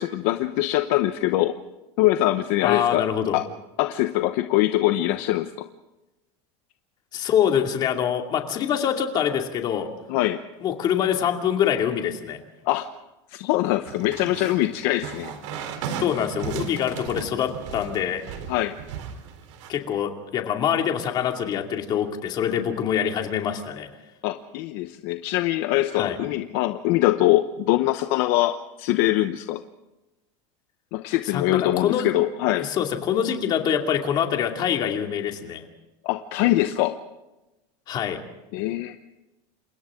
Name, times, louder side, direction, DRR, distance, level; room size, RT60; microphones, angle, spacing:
voice 1, 0.0-1.5 2.0-3.0 3.3-3.5 3.8-5.7 10.1-10.4 12.6-12.9 13.3-15.3 18.5-18.8 24.2-29.6 30.9-32.7 36.0-37.0 38.5-39.0, left 15 dB, 50° left, 8 dB, 1.0 m, -23 dB
voice 2, 2.6-3.4 7.1-9.9 10.6-12.4 16.0-18.2 19.7-23.9 25.9-26.2 31.3-32.1 32.6-35.6 37.9-38.2, left 9 dB, 30° left, 3 dB, 2.5 m, -25 dB
sound 1, 13.8-19.7, right 7 dB, 90° right, 3.7 m, -36 dB
29.0 x 27.5 x 3.8 m, 1.0 s
supercardioid pair, 175°, 15 cm